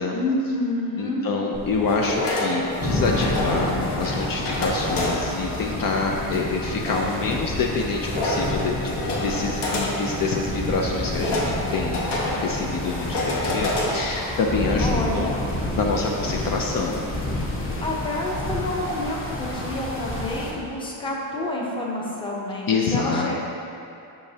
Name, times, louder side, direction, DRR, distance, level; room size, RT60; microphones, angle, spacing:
voice 1, 0.1-1.3 14.8-15.5 17.8-23.4, left 1 dB, 10° left, -3 dB, 0.7 m, -28 dB
voice 2, 1.0-12.0 12.3-15.3 15.7-17.0 22.7-23.4, left 4 dB, 50° left, 0 dB, 0.6 m, -26 dB
sound 1, 1.5-16.5, left 1 dB, 65° left, 1.4 m, -30 dB
sound 2, 2.8-20.5, left 2 dB, 30° left, 1.1 m, -29 dB
Bowed string instrument, 8.1-11.9 12.2-12.3, right 11 dB, 50° right, 0.5 m, -40 dB
8.5 x 5.8 x 2.8 m, 2.7 s
cardioid pair, 150°, 43 cm